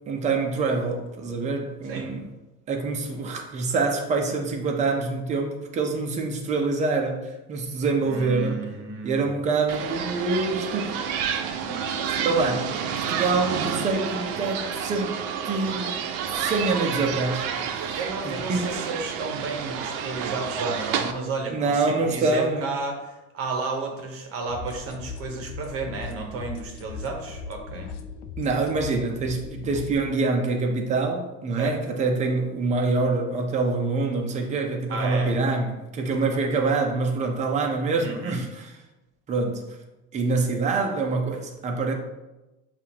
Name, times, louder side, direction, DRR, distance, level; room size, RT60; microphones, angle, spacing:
voice 1, 0.1-2.3 2.7-8.6 9.0-11.0 12.2-16.0 16.3-18.8 21.5-22.7 28.4-38.7 39.3-39.6 40.1-41.9, right 3 dB, 20° right, 0.6 m, -26 dB
voice 2, 8.0-9.2 11.6-12.4 17.9-27.9 31.6-31.8 34.9-35.3 38.0-38.4, right 4 dB, 45° right, 0.9 m, -33 dB
sound 1, 9.7-21.1, right 7 dB, 70° right, 0.6 m, -30 dB
sound 2, 24.5-30.0, left 5 dB, 90° left, 0.5 m, -38 dB
6.8 x 2.4 x 2.8 m
cardioid pair, 155°, 32 cm